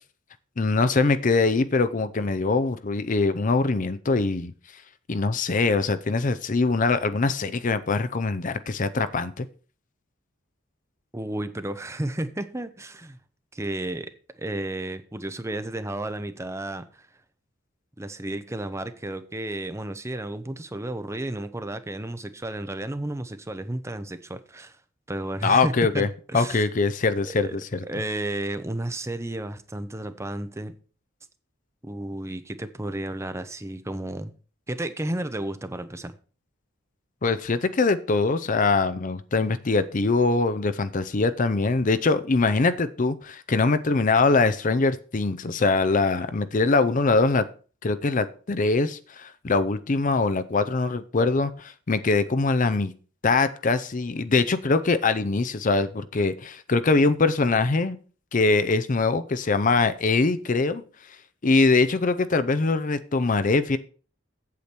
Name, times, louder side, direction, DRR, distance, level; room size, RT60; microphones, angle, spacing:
voice 1, 0.6-4.5 5.1-9.5 25.4-26.1 26.3-27.8 37.2-47.5 47.8-52.9 53.2-58.0 58.3-60.8 61.4-63.8, left 3 dB, 40° left, 0.6 m, -23 dB
voice 2, 11.1-13.2 13.5-14.1 14.4-17.1 18.0-24.8 25.1-26.6 27.2-27.6 27.8-30.7 31.8-34.3 34.7-36.1, right 1 dB, 15° right, 0.7 m, -32 dB
8.4 x 8.2 x 4.5 m
head